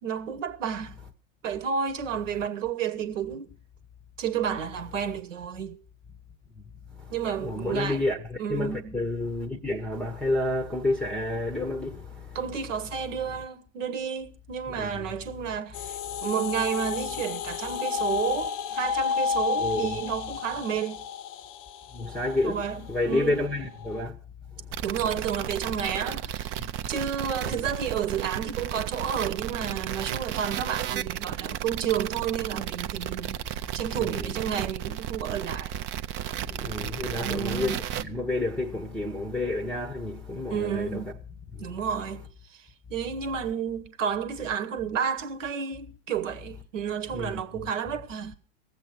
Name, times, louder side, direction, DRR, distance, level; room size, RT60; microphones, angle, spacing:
voice 1, 0.0-1.0 1.4-3.5 4.2-5.8 7.1-8.0 8.4-9.0 12.3-21.0 22.4-23.4 24.8-35.7 37.2-37.8 40.5-41.1 41.6-42.2 42.5-48.4, right 8 dB, 70° right, 1.4 m, -31 dB
voice 2, 7.4-12.4 14.8-15.0 19.6-20.0 21.9-22.6 22.9-24.2 24.6-24.8 26.6-26.7 33.9-34.3 36.5-41.1 41.5-41.7 47.1-47.7, left 2 dB, ahead, 0.9 m, -30 dB
sound 1, 15.7-24.0, left 6 dB, 35° left, 0.6 m, -31 dB
sound 2, 24.7-38.0, right 11 dB, 30° right, 0.6 m, -33 dB
18.0 x 7.7 x 6.0 m
hypercardioid pair, 100°, 39 cm